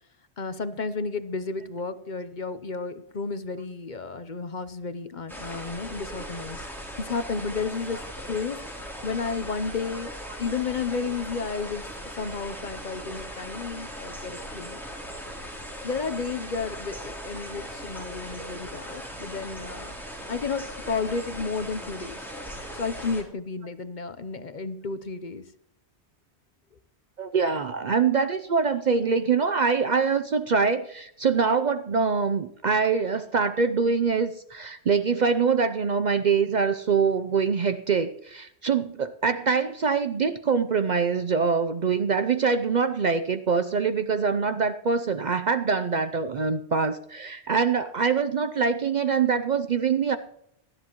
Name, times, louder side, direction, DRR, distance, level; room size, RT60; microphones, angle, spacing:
voice 1, 0.4-6.7 7.0-10.1 10.4-14.8 15.8-19.9 20.3-22.3 22.7-25.5, left 4 dB, 45° left, 11 dB, 0.8 m, -32 dB
sound 1, 5.3-23.2, equal, ahead, 3.2 m, -39 dB
voice 2, 27.2-50.2, right 5 dB, 50° right, 10 dB, 0.6 m, -24 dB
18.5 x 13.0 x 3.0 m, 0.74 s
omnidirectional pair, 1.1 m